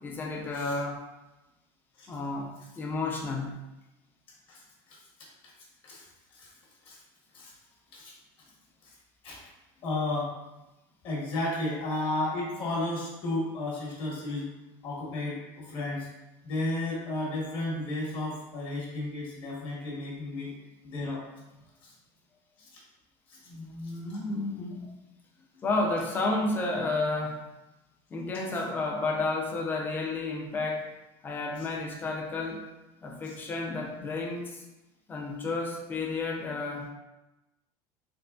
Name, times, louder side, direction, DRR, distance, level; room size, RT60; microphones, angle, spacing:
voice 1, 0.0-1.0 2.1-3.6 23.5-24.9 25.6-27.4 28.1-30.8 31.2-32.6 33.0-34.6 35.1-36.9, left 3 dB, 15° left, 0 dB, 0.4 m, -31 dB
voice 2, 9.8-10.3 11.0-14.5 14.8-16.1 16.4-20.5 20.8-21.2 22.6-22.8 23.3-23.4 24.1-24.2 31.6-31.7 33.2-33.4, left 2 dB, 40° left, -4 dB, 1.1 m, -33 dB
3.7 x 3.0 x 2.3 m, 1.0 s
cardioid pair, 170°, 13 cm